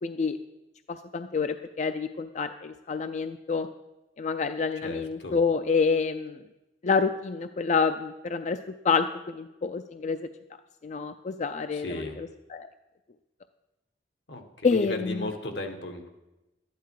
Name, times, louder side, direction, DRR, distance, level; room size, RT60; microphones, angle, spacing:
voice 1, 0.0-0.4 0.9-3.7 4.2-6.4 6.8-8.6 8.8-10.3 10.8-12.7 14.6-15.3, left 5 dB, 40° left, 9 dB, 0.4 m, -28 dB
voice 2, 4.8-5.4 11.7-12.2 14.3-16.1, left 1 dB, 80° left, 4 dB, 1.6 m, -35 dB
12.0 x 10.5 x 4.7 m, 0.99 s
head